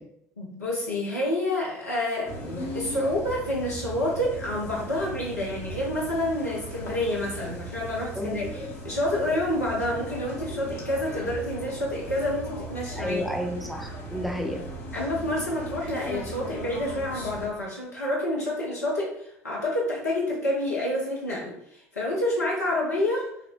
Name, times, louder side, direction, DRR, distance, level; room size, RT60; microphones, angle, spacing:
voice 1, 0.4-13.2 14.9-23.3, left 1 dB, 80° left, -4 dB, 0.7 m, -28 dB
sound 1, 2.2-17.5, right 1 dB, 65° left, 1.1 m, -38 dB
voice 2, 8.2-8.5 13.0-14.6, equal, ahead, 1 dB, 0.7 m, -31 dB
5.4 x 2.1 x 2.6 m, 0.74 s
figure-of-eight pair, 60°, 9 cm